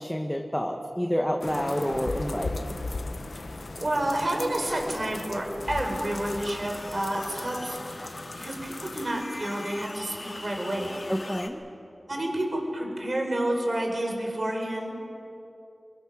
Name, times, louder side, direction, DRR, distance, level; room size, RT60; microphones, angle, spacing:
voice 1, 0.0-2.7 11.1-11.6, equal, 5° left, 3 dB, 1.4 m, -28 dB
sound 1, 1.4-9.1, left 3 dB, 75° left, 1.2 m, -37 dB
voice 2, 3.8-8.1 8.3-11.0 12.1-14.9, right 1 dB, 50° right, 1 dB, 4.9 m, -29 dB
sound 2, 5.6-11.5, left 2 dB, 55° left, 2.2 m, -41 dB
25.5 x 23.5 x 6.4 m, 2.8 s
wide cardioid pair, 60°, 0 cm